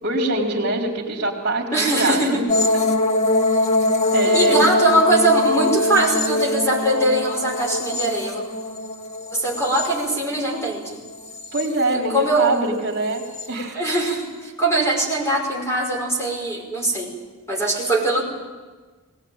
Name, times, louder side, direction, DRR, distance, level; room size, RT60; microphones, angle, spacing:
voice 1, 0.0-2.4 4.1-4.5 11.5-13.8, right 2 dB, 50° right, -4 dB, 4.2 m, -24 dB
voice 2, 1.7-2.4 4.2-8.4 9.3-11.0 11.9-12.7 13.7-17.1 17.5-18.2, right 1 dB, 15° left, -1 dB, 5.8 m, -21 dB
sound 1, 2.5-10.7 11.1-11.9 13.1-13.5, left 2 dB, 35° left, 1.7 m, -22 dB
22.0 x 19.0 x 9.0 m, 1.3 s
head